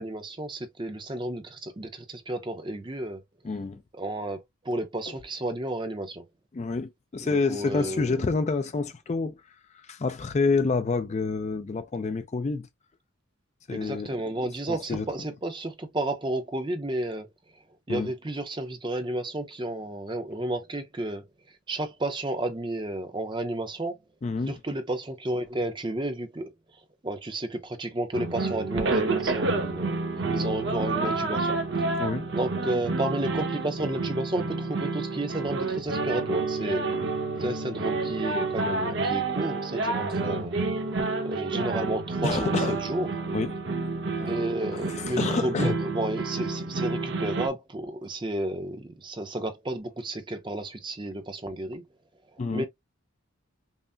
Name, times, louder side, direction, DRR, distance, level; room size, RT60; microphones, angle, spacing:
voice 1, 0.0-3.2 3.9-6.2 7.2-8.3 13.7-17.6 17.9-24.0 24.5-30.0 30.3-31.8 32.3-36.9 37.4-40.6 41.0-43.1 44.2-51.8 52.3-52.6, right 1 dB, 20° right, 0.6 m, -32 dB
voice 2, 3.4-3.8 6.5-9.4 9.9-12.7 13.7-14.1 14.7-15.0 17.9-18.1 24.2-24.6 32.0-32.3 42.2-42.8 43.3-43.5 44.2-44.3 44.7-45.8 52.4-52.6, left 4 dB, 30° left, 0.3 m, -28 dB
sound 1, 28.1-47.5, right 3 dB, 55° right, 0.8 m, -29 dB
5.5 x 2.0 x 2.5 m
head